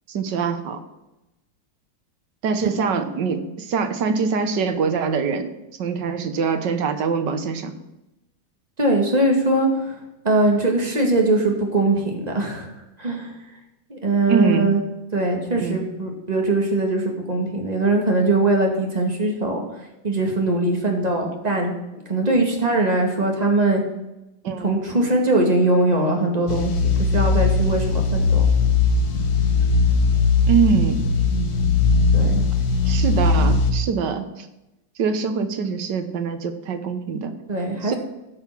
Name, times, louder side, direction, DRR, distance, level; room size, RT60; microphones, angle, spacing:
voice 1, 0.1-0.8 2.4-5.5 5.8-7.8 14.3-14.8 15.6-15.9 24.4-24.7 30.5-31.1 32.9-34.5 35.0-37.3 37.8-37.9, right 5 dB, 70° right, 8 dB, 1.6 m, -23 dB
voice 2, 8.8-9.9 10.2-12.7 13.0-13.3 13.9-14.8 15.1-19.6 20.0-21.7 22.1-23.8 24.6-26.7 27.1-28.4 32.1-32.4 37.5-37.9, right 2 dB, 20° right, 1 dB, 2.0 m, -21 dB
sound 1, 26.5-33.7, left 4 dB, 60° left, 1.5 m, -19 dB
15.5 x 5.9 x 6.0 m, 0.95 s
omnidirectional pair, 2.0 m